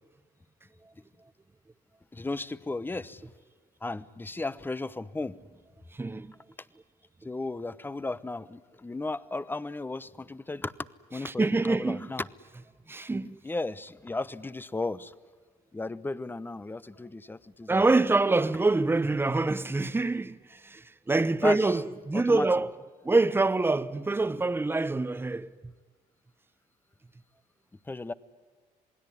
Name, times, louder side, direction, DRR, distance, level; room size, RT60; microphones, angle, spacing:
voice 1, 2.1-3.3 3.8-5.4 7.2-10.7 11.1-12.3 13.4-15.1 15.7-17.8 21.4-21.8 22.1-22.5 27.8-28.1, left 2 dB, 10° left, 0.9 m, -35 dB
voice 2, 6.0-6.3 11.4-12.1 12.9-13.4 17.7-22.7 23.0-25.5, right 3 dB, 15° right, 1.0 m, -25 dB
28.0 x 20.0 x 9.8 m
cardioid pair, 110°, 17 cm